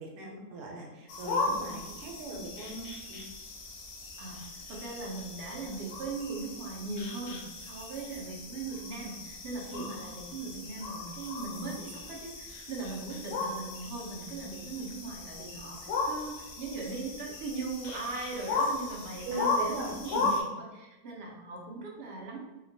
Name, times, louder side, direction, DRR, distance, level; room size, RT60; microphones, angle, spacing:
voice 1, 0.0-3.2 9.7-9.9 19.2-20.3, right 2 dB, 90° right, -1 dB, 1.2 m, -39 dB
sound 1, 1.1-20.4, left 3 dB, 70° left, 0.9 m, -36 dB
voice 2, 4.2-22.4, right 3 dB, 65° right, -1 dB, 0.6 m, -39 dB
2.8 x 2.2 x 2.6 m, 1.1 s
omnidirectional pair, 1.7 m